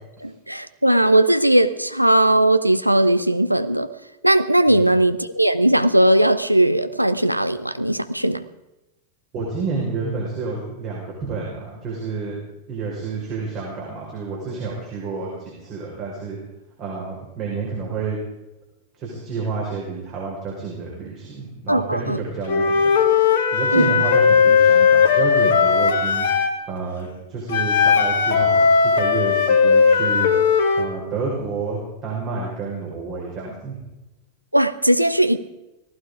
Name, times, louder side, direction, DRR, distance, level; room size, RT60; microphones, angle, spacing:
voice 1, 0.2-3.9 4.2-8.4 21.7-22.2 23.7-24.0 34.5-35.4, right 1 dB, 90° right, 11 dB, 0.7 m, -18 dB
voice 2, 9.3-12.3 12.7-16.4 16.8-18.2 19.0-22.9 23.5-26.3 26.7-28.7 28.9-30.3 30.8-33.8, right 4 dB, 35° right, -3 dB, 5.5 m, -29 dB
Wind instrument woodwind instrument, 22.5-26.6 27.5-30.9, left 6 dB, 55° left, 1.8 m, -17 dB
18.5 x 15.5 x 4.9 m, 0.98 s
figure-of-eight pair, 90°, 0 cm